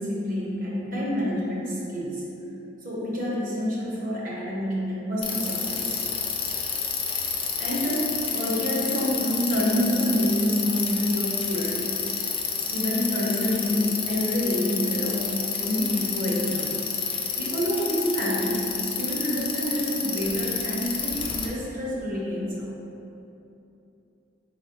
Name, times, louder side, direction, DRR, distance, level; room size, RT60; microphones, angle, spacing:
voice 1, 0.0-2.2 2.8-6.0 7.3-11.9 12.6-15.3 15.6-16.8 17.4-22.7, equal, 45° right, -5 dB, 0.8 m, -27 dB
Bicycle, 5.2-21.5, left 6 dB, 25° left, 0.3 m, -29 dB
4.0 x 4.0 x 2.8 m, 2.9 s
head